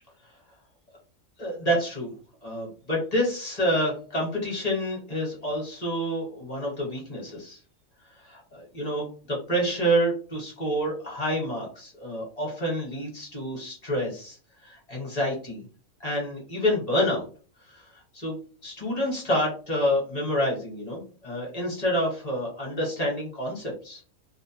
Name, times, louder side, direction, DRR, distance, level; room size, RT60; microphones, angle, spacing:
voice 1, 1.4-2.1 2.4-7.6 8.2-14.4 14.6-15.6 16.0-17.2 17.7-17.8 18.1-18.3 18.6-24.0, equal, 30° left, -3 dB, 1.0 m, -28 dB
2.4 x 2.0 x 2.8 m, 0.39 s
omnidirectional pair, 1.4 m